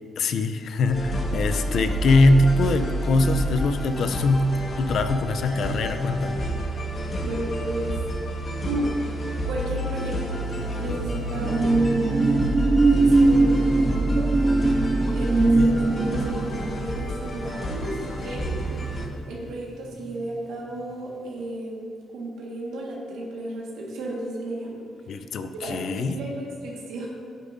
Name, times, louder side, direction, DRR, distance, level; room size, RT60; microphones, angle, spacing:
voice 1, 0.2-6.4 15.5-15.7 25.1-26.2, left 2 dB, 65° left, 9 dB, 0.5 m, -22 dB
sound 1, 0.9-19.1, equal, 40° left, 1.4 m, -29 dB
voice 2, 7.2-7.9 8.6-10.5 10.8-12.1 12.7-14.4 15.1-18.5 19.3-24.8 25.5-27.1, right 1 dB, 85° right, -3 dB, 1.5 m, -33 dB
sound 2, 10.5-19.5 19.8-20.1, right 3 dB, 30° right, 0.3 m, -22 dB
10.0 x 8.3 x 2.6 m, 2.2 s
cardioid pair, 90°, 0 cm